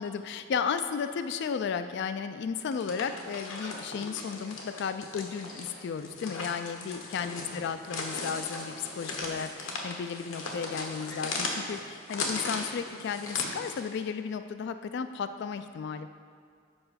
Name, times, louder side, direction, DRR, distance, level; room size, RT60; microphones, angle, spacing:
voice 1, 0.0-16.1, left 6 dB, 60° left, 10 dB, 0.3 m, -34 dB
sound 1, 2.6-13.9, left 3 dB, 80° left, 1.2 m, -38 dB
7.9 x 5.5 x 5.7 m, 2.2 s
head